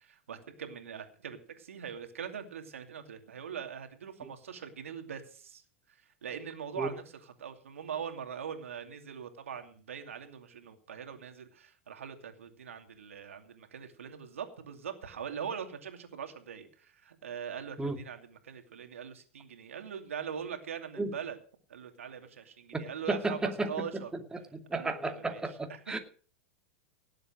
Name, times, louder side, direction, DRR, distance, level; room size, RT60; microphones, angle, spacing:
voice 1, 0.0-5.6 5.9-21.4 21.7-24.1 24.7-26.0, right 7 dB, 90° right, 6 dB, 2.6 m, -42 dB
voice 2, 22.7-24.0 24.5-26.0, right 2 dB, 10° right, 5 dB, 2.4 m, -33 dB
18.5 x 7.9 x 6.3 m, 0.42 s
hypercardioid pair, 110°, 7 cm